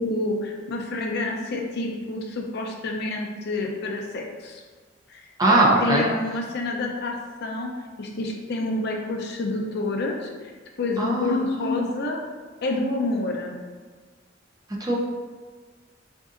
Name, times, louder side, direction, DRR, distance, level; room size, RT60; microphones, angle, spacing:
voice 1, 0.0-4.6 5.1-5.2 5.5-7.7 8.0-10.5 10.8-12.2 12.6-13.6, left 2 dB, 55° left, 0 dB, 0.5 m, -28 dB
voice 2, 5.4-6.1 11.0-11.9 14.8-14.9, right 1 dB, 20° right, -3 dB, 0.5 m, -21 dB
4.7 x 2.6 x 2.4 m, 1.5 s
head